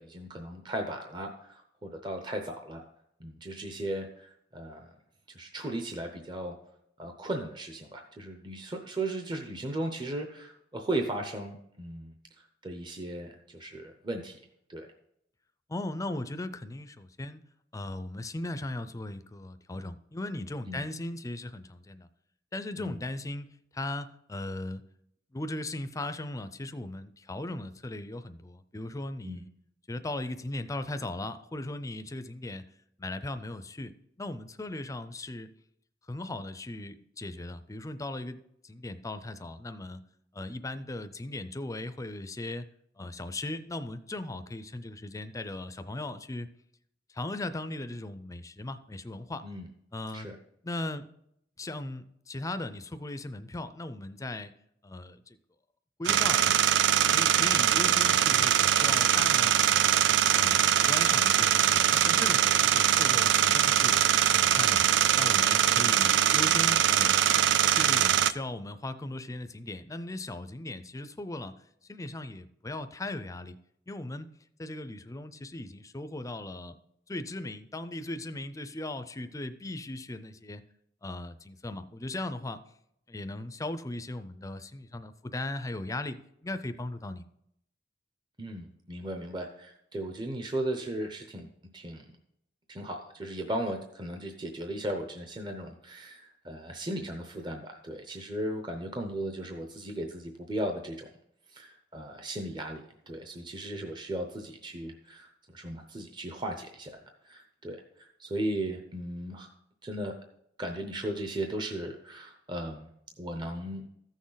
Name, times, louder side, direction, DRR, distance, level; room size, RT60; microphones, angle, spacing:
voice 1, 0.0-2.8 3.2-4.9 5.3-6.6 7.0-12.1 12.6-14.4 14.7-14.9 20.7-20.8 22.8-23.0 29.2-29.4 49.4-49.7 50.1-50.4 88.4-91.5 91.7-92.1 92.7-101.1 101.5-109.5 109.8-110.1 110.6-112.9 113.2-113.8, right 1 dB, 25° right, 4 dB, 0.7 m, -36 dB
voice 2, 15.7-17.4 17.7-22.1 22.5-24.8 25.3-29.5 29.9-32.6 33.0-33.9 34.2-35.5 36.1-40.0 40.3-42.7 43.0-46.5 47.1-49.4 49.9-50.3 50.6-51.1 51.6-54.5 54.8-55.4 56.0-56.6 57.1-59.9 60.3-64.0 64.3-64.9 65.1-67.2 67.8-71.5 71.9-73.6 73.9-74.3 74.6-76.8 77.1-80.6 81.0-82.6 83.1-86.2 86.4-87.2, left 2 dB, 15° left, 11 dB, 0.5 m, -38 dB
sound 1, 56.1-68.3, right 10 dB, 65° right, 0.4 m, -23 dB
14.0 x 6.3 x 3.9 m, 0.76 s
head